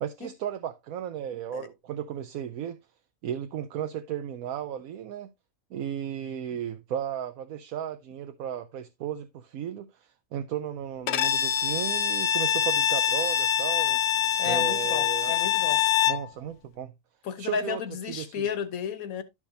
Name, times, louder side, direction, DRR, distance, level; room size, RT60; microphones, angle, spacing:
voice 1, 0.0-2.8 3.2-5.3 5.7-14.0 14.4-15.3 16.1-16.9 17.4-17.8 18.1-18.5, right 9 dB, 90° right, 1.2 m, -35 dB
Bowed string instrument, 11.1-16.3, left 9 dB, 65° left, 0.9 m, -25 dB
voice 2, 14.4-15.8 17.2-19.2, left 6 dB, 85° left, 1.5 m, -33 dB
12.0 x 6.0 x 2.7 m
omnidirectional pair, 1.4 m